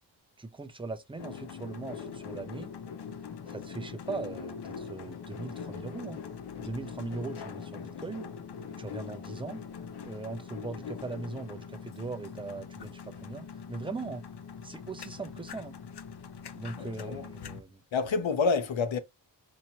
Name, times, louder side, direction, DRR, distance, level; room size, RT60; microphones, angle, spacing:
voice 1, 0.4-2.7 3.5-6.2 6.6-8.3 8.8-9.6 10.0-14.2 14.6-15.7 16.6-17.8, right 3 dB, 10° right, 0.6 m, -39 dB
sound 1, 1.2-17.6, left 6 dB, 60° left, 0.6 m, -42 dB
voice 2, 16.8-17.3 17.9-19.0, left 4 dB, 90° left, 0.9 m, -28 dB
4.3 x 2.8 x 2.8 m
wide cardioid pair, 155°, 45 cm